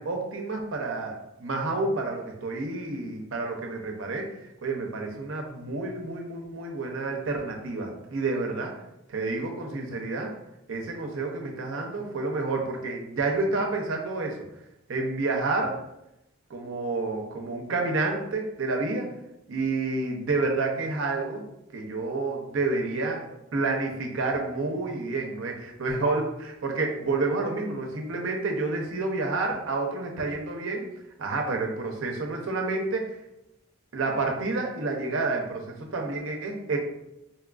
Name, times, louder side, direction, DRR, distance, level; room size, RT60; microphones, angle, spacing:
voice 1, 0.0-8.7 9.1-10.3 10.7-14.4 14.9-15.7 16.5-19.1 19.5-21.4 21.7-30.9 31.2-33.2 33.9-36.8, right 3 dB, 70° right, 2 dB, 0.6 m, -29 dB
4.1 x 2.4 x 2.3 m, 0.87 s
head